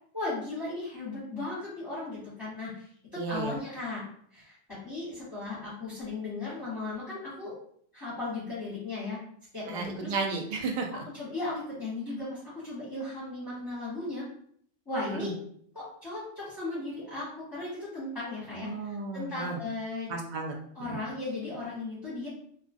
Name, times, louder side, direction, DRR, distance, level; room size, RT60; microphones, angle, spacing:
voice 1, 0.1-2.9 3.1-4.0 4.3-7.5 7.9-9.2 9.5-10.1 11.1-14.2 14.9-15.4 15.7-20.1 20.7-22.3, left 2 dB, 20° left, -10 dB, 0.8 m, -36 dB
voice 2, 3.2-3.6 9.7-10.9 15.2-15.3 18.6-19.6 20.1-21.0, right 4 dB, 60° right, 2 dB, 0.5 m, -33 dB
2.3 x 2.3 x 2.5 m, 0.62 s
omnidirectional pair, 1.3 m